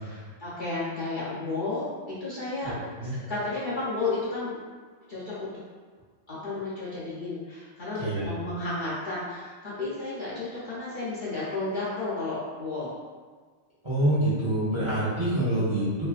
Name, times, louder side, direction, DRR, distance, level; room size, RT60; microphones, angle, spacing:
voice 1, 0.0-4.6 5.1-5.5 6.3-12.9 15.5-15.6, left 2 dB, 50° left, -10 dB, 0.8 m, -32 dB
voice 2, 2.6-3.1 8.0-8.3 13.8-16.1, right 1 dB, 25° right, -11 dB, 0.8 m, -26 dB
3.1 x 2.6 x 2.3 m, 1.5 s
omnidirectional pair, 1.3 m